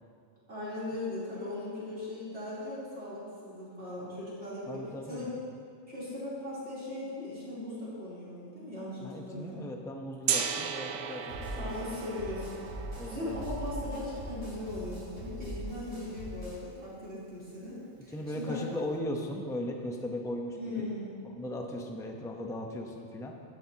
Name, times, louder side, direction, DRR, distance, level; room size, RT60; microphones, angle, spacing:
voice 1, 0.5-4.8 5.1-5.3 5.9-9.7 11.6-12.8 13.0-18.6 20.6-21.1, left 1 dB, 50° right, -10 dB, 3.7 m, -39 dB
voice 2, 4.7-5.3 9.0-11.9 13.0-13.5 18.1-20.9 21.2-23.3, left 1 dB, 5° left, 1 dB, 0.6 m, -38 dB
Gong, 10.3-16.2, right 7 dB, 75° right, 1.1 m, -37 dB
sound 1, 11.3-16.6, left 1 dB, 50° left, 3.4 m, -41 dB
14.5 x 11.5 x 2.9 m, 2.4 s
omnidirectional pair, 1.4 m